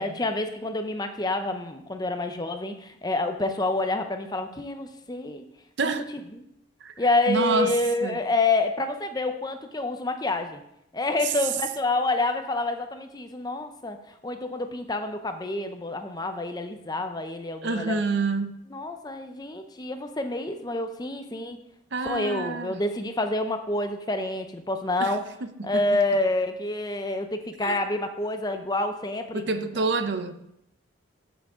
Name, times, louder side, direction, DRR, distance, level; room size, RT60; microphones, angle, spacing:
voice 1, 0.0-5.4 5.8-5.9 7.0-10.6 10.9-18.0 18.7-21.6 22.1-25.2 25.6-29.4, left 2 dB, 20° left, 7 dB, 0.6 m, -28 dB
voice 2, 7.3-7.7 8.0-8.2 11.2-11.3 17.6-18.5 21.9-22.8 25.0-25.1 25.6-26.0 27.6-27.8 29.3-30.4, right 3 dB, 55° right, 9 dB, 0.7 m, -27 dB
14.0 x 6.2 x 3.7 m, 0.80 s
head